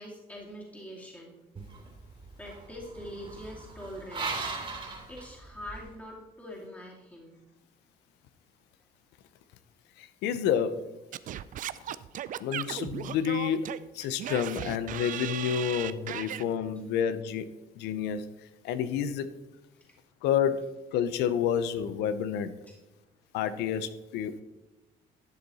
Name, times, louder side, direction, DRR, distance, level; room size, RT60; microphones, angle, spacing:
voice 1, 0.0-1.3 2.4-4.3 5.1-7.4 22.7-22.8, equal, 10° left, 2.5 m, -44 dB
sound 1, 1.6-5.9, right 4 dB, 30° right, 2.7 m, -39 dB
voice 2, 10.0-10.9 12.4-13.6 13.9-17.5 17.8-18.2 18.6-19.3 20.2-22.5 23.3-24.4, left 8 dB, 90° left, 0.8 m, -29 dB
Singing / Scratching (performance technique), 11.1-16.4, right 11 dB, 50° right, 0.4 m, -36 dB
11.5 x 7.0 x 4.2 m
cardioid pair, 110°, 17 cm